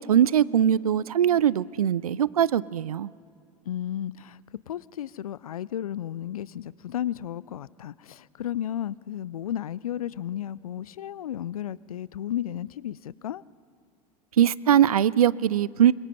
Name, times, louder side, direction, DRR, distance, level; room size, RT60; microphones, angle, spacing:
voice 1, 0.0-3.1 14.4-15.9, right 10 dB, 75° right, 22 dB, 0.4 m, -21 dB
voice 2, 3.7-13.4, left 11 dB, 75° left, 22 dB, 0.4 m, -33 dB
25.5 x 21.5 x 5.5 m, 2.3 s
figure-of-eight pair, 75°, 19 cm